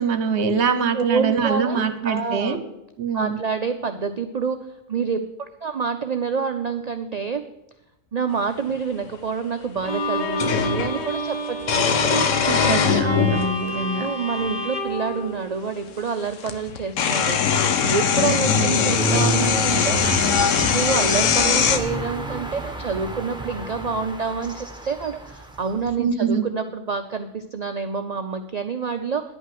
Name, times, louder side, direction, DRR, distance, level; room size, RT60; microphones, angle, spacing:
voice 1, 0.0-2.6 3.0-3.4 12.4-14.1 18.5-18.9 26.0-26.5, right 6 dB, 55° right, 10 dB, 1.1 m, -24 dB
voice 2, 0.9-2.6 3.1-4.6 4.9-7.4 8.1-11.9 14.0-17.4 17.8-20.3 20.7-29.2, right 5 dB, 80° right, 7 dB, 0.3 m, -27 dB
sound 1, 8.7-8.8 10.4-10.9 11.6-13.5 14.4-14.5 16.0-16.1 16.4-21.8, left 6 dB, 65° left, 1.1 m, -21 dB
Bowed string instrument, 9.8-16.1, equal, 35° left, 1.1 m, -29 dB
sound 2, 19.0-25.9, right 1 dB, 5° right, 0.8 m, -30 dB
10.5 x 5.6 x 7.7 m, 0.88 s
omnidirectional pair, 1.4 m